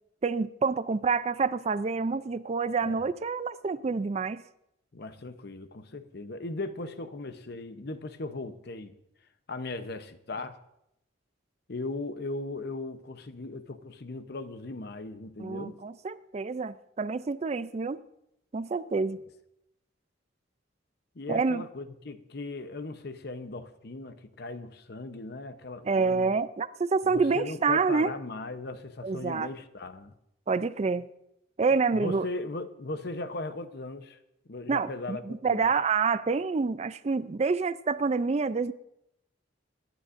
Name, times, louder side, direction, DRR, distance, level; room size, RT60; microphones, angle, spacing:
voice 1, 0.2-4.4 15.4-18.0 18.5-19.2 21.3-21.6 25.8-28.1 29.0-29.5 30.5-31.1 31.6-32.3 34.7-38.7, right 4 dB, 35° right, 0.4 m, -27 dB
voice 2, 4.9-8.9 9.5-10.6 11.7-15.8 21.2-26.3 27.0-30.1 31.7-34.2 34.5-35.7, left 2 dB, 55° left, 0.8 m, -38 dB
26.0 x 11.5 x 2.6 m
head